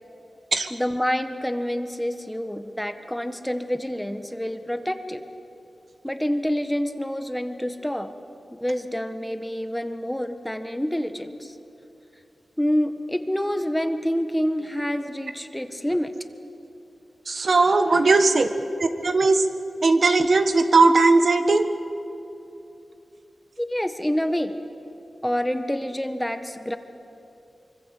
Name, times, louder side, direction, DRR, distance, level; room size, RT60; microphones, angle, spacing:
voice 1, 0.7-5.2 6.0-8.1 8.6-11.5 12.6-16.3 18.1-18.3 23.6-24.5 25.2-26.8, equal, 5° left, 8 dB, 1.5 m, -27 dB
voice 2, 17.3-18.5 19.0-19.4 19.8-21.6, right 3 dB, 60° right, 8 dB, 1.5 m, -18 dB
24.5 x 24.5 x 8.5 m, 2.8 s
wide cardioid pair, 75°, 0 cm